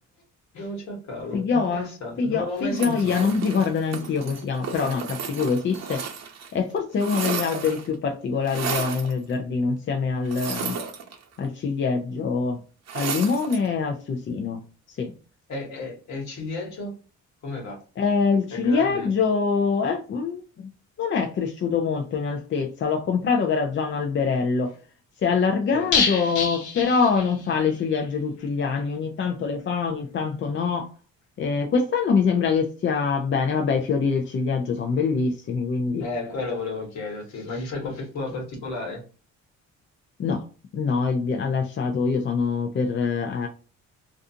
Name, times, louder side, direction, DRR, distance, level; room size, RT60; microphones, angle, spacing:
voice 1, 0.5-3.3 15.5-16.9 17.4-17.8 18.5-19.1 25.7-25.9 36.0-39.0, left 2 dB, 65° left, 1.3 m, -33 dB
voice 2, 1.3-1.9 2.2-6.0 6.5-10.8 11.4-12.6 12.9-15.1 18.0-20.7 21.0-24.7 25.2-30.9 31.4-36.0 37.8-37.9 40.2-40.4 40.7-43.5, left 5 dB, 40° left, 0.5 m, -24 dB
sound 1, 2.7-6.5 6.8-7.9 8.5-9.1 10.3-11.5 12.9-13.7, right 6 dB, 60° right, 0.7 m, -33 dB
sound 2, 25.9-27.7 28.0-28.1 28.4-28.5, left 5 dB, 85° left, 1.0 m, -26 dB
2.5 x 2.3 x 2.6 m
cardioid pair, 90°, 30 cm